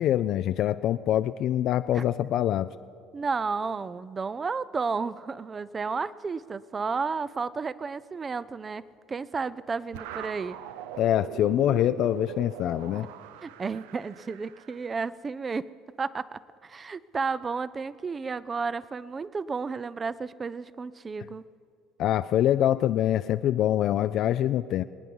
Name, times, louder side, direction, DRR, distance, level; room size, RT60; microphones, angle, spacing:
voice 1, 0.0-2.7 11.0-13.1 22.0-24.8, left 12 dB, 60° left, 10 dB, 0.4 m, -25 dB
voice 2, 3.1-10.6 13.4-15.7 16.0-21.4, right 4 dB, 30° right, 17 dB, 0.5 m, -32 dB
sound 1, 9.9-15.0, right 10 dB, 80° right, 0.5 m, -41 dB
25.5 x 9.6 x 5.4 m, 2.2 s
hypercardioid pair, 70°, 0 cm